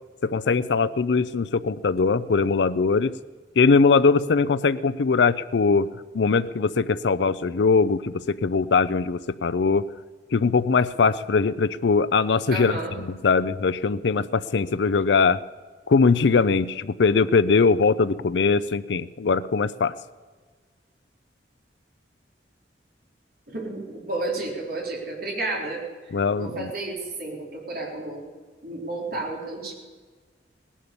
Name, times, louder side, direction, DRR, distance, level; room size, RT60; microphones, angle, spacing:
voice 1, 0.2-3.1 3.6-5.9 6.1-9.8 10.3-15.4 15.9-19.9 26.1-26.7, left 4 dB, 70° left, 13 dB, 0.5 m, -21 dB
voice 2, 12.5-13.0 23.5-25.8 26.4-28.2 28.6-29.7, right 2 dB, 55° right, -2 dB, 4.0 m, -31 dB
18.0 x 11.0 x 6.8 m, 1.4 s
head